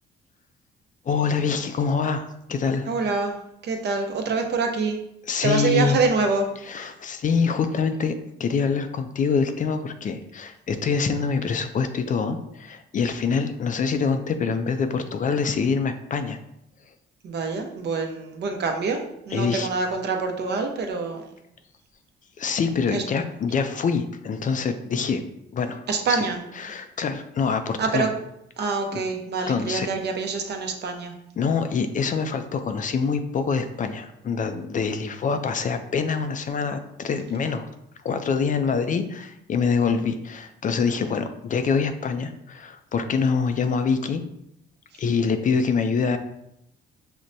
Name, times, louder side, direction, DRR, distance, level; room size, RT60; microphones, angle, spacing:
voice 1, 1.1-2.9 5.3-6.0 6.7-8.1 8.4-16.4 19.3-19.7 22.4-25.2 25.5-26.3 26.6-28.1 28.9-29.0 29.5-29.9 31.4-37.7 38.0-44.2 45.0-46.2, left 5 dB, 40° left, 8 dB, 0.4 m, -25 dB
voice 2, 2.9-3.4 3.6-5.0 5.4-6.5 17.2-21.3 22.9-23.0 25.9-26.4 27.8-28.1 28.6-31.1, right 4 dB, 55° right, 3 dB, 0.7 m, -26 dB
5.9 x 2.1 x 2.6 m, 0.79 s
cardioid pair, 90°, 20 cm